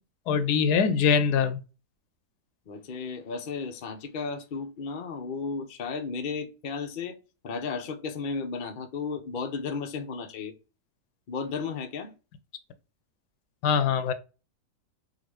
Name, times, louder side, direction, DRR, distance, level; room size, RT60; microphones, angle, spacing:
voice 1, 0.3-1.6 13.6-14.1, left 6 dB, 90° left, 1.2 m, -23 dB
voice 2, 2.7-7.1 7.4-10.5 11.3-12.1, left 5 dB, 70° left, 0.4 m, -34 dB
3.7 x 2.4 x 3.1 m
omnidirectional pair, 1.7 m